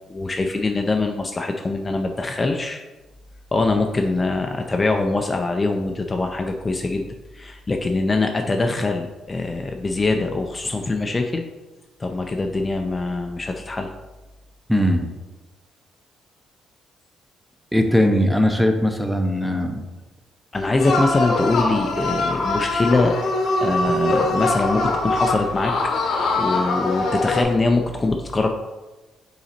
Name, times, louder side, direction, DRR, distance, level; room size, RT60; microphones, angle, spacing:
voice 1, 0.1-2.8 3.5-7.1 7.3-11.4 12.0-13.9 20.5-23.1 23.6-25.7 26.4-28.5, left 3 dB, 25° left, 3 dB, 0.5 m, -23 dB
voice 2, 14.7-15.0 17.7-19.7, equal, ahead, 5 dB, 0.8 m, -19 dB
sound 1, 20.8-27.4, left 2 dB, 75° left, 1.0 m, -23 dB
5.7 x 3.9 x 4.3 m, 1.2 s
cardioid pair, 90°, 0 cm